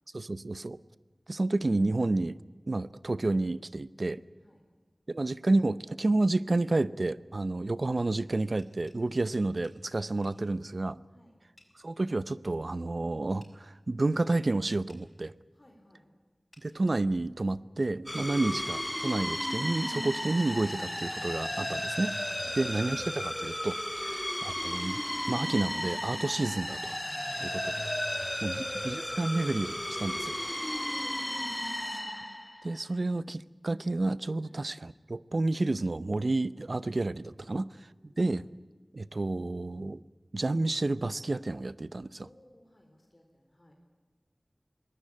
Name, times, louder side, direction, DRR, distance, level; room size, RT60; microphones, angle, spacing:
voice 1, 0.1-0.8 1.3-2.4 2.7-4.2 5.1-11.0 11.8-15.3 16.6-22.1 22.5-27.0 27.4-27.7 28.4-30.3 32.6-37.7 38.0-38.5 38.9-40.0 40.3-42.3, right 2 dB, 65° right, 17 dB, 0.7 m, -30 dB
sound 1, 8.1-9.8 10.2-10.4 11.6-11.7 13.4-13.5 14.9-15.0 16.5-16.7 19.1-19.2 20.0-20.3 21.8-22.1 23.7-24.2 24.8-25.0 25.4-25.5, left 2 dB, 60° left, 6.1 m, -60 dB
voice 2, 15.5-16.1 22.4-22.6 24.0-24.1 27.3-27.6 28.0-29.3 29.8-31.6 34.4-34.6 37.4-37.7 38.0-38.2 42.2-43.7, left 1 dB, 35° left, 2 dB, 4.1 m, -58 dB
sound 2, 18.1-32.8, left 1 dB, 20° left, 0.7 m, -34 dB
23.0 x 19.5 x 8.6 m, 1.4 s
wide cardioid pair, 50°, 0 cm